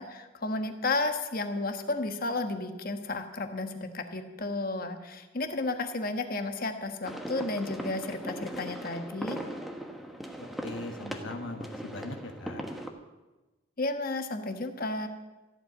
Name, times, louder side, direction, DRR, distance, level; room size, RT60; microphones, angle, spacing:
voice 1, 0.0-9.4 13.8-15.1, left 2 dB, 45° left, 7 dB, 1.3 m, -32 dB
sound 1, 7.0-12.9, equal, ahead, 1.1 m, -39 dB
voice 2, 10.4-12.6, left 2 dB, 70° left, 5 dB, 1.2 m, -40 dB
14.5 x 8.0 x 9.5 m, 1.1 s
head